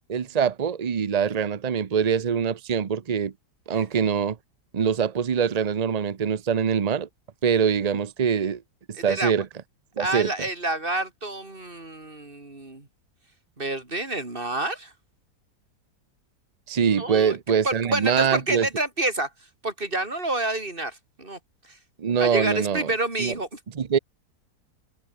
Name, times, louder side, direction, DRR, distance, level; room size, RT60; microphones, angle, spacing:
voice 1, 0.1-3.3 3.7-4.4 4.7-7.1 7.4-8.6 9.0-9.5 10.0-10.3 16.7-18.7 22.0-22.9 23.2-23.3 23.7-24.0, right 7 dB, 60° right, 0.4 m, -23 dB
voice 2, 9.0-9.3 10.0-12.9 13.6-14.9 17.0-17.4 17.6-19.3 19.6-21.4 22.2-23.6, right 2 dB, 30° right, 4.1 m, -28 dB
omnidirectional pair, 1.8 m